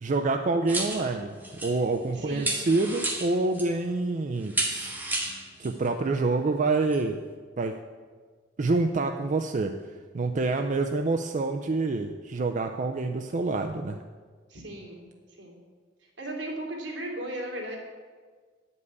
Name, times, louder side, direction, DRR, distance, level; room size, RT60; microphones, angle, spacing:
voice 1, 0.0-1.4 1.6-5.0 5.6-7.2 7.6-7.7 8.6-9.7 10.1-14.0, right 3 dB, 40° right, 5 dB, 0.4 m, -27 dB
sound 1, 0.7-2.1 2.4-3.8 4.4-5.9 6.9-7.0, right 2 dB, 10° right, 1.4 m, -32 dB
voice 2, 2.1-2.7 14.5-15.6 16.2-17.8, right 1 dB, 80° right, 0 dB, 2.4 m, -36 dB
9.4 x 5.5 x 8.1 m, 1.5 s
head